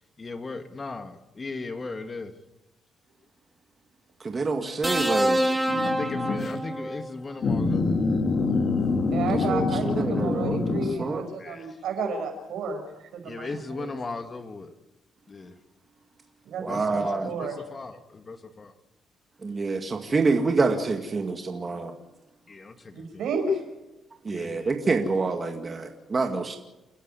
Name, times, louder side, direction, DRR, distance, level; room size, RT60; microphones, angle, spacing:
voice 1, 0.2-2.3 5.9-8.0 11.4-11.7 13.3-14.7 15.3-15.5 16.6-18.7 22.5-23.2 24.3-24.7, left 3 dB, 30° left, 8 dB, 1.8 m, -37 dB
voice 2, 4.2-5.4 9.3-10.6 11.0-11.2 16.6-17.3 19.4-21.9 24.2-26.6, right 3 dB, 35° right, 4 dB, 2.0 m, -27 dB
sound 1, 4.8-7.1 8.4-8.6, right 1 dB, 10° right, 2.6 m, -26 dB
sound 2, 5.7-6.5 7.4-10.9, left 3 dB, 50° left, 2.7 m, -25 dB
voice 3, 9.1-12.8 13.2-13.9 16.4-17.6 22.9-23.6, right 3 dB, 80° right, 5 dB, 5.9 m, -31 dB
29.5 x 10.0 x 9.5 m, 1.0 s
cardioid pair, 90°, 0 cm